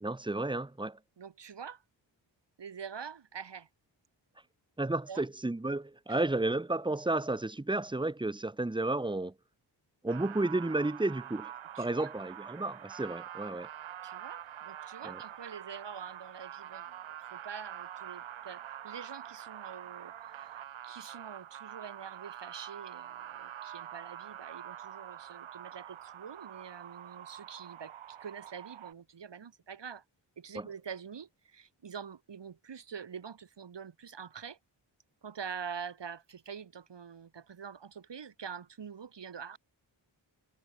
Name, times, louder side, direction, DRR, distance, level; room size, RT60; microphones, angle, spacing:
voice 1, 0.0-1.0 4.8-9.3 10.0-11.5 11.8-13.7 15.0-15.2 30.5-30.7, right 2 dB, 10° right, 1.2 m, -32 dB
voice 2, 1.2-1.8 2.6-3.7 5.1-5.3 6.1-6.2 11.7-12.2 14.0-20.1 20.4-20.5 20.8-30.0 30.4-34.6 35.2-39.6, right 7 dB, 65° right, 3.9 m, -45 dB
sound 1, 10.1-28.9, right 10 dB, 85° right, 1.6 m, -46 dB
cardioid pair, 60°, 46 cm